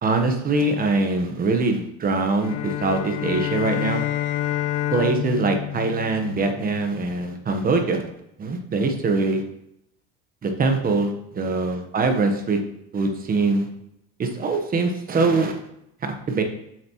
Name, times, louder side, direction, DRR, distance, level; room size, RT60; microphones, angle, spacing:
voice 1, 0.0-4.0 4.9-8.0 8.4-9.4 10.4-12.6 12.9-13.7 14.2-15.6 16.0-16.4, right 3 dB, 25° right, 5 dB, 1.1 m, -23 dB
sound 1, 2.4-6.8, left 12 dB, 60° left, 0.8 m, -28 dB
7.3 x 7.2 x 3.0 m, 0.80 s
cardioid pair, 145°, 35 cm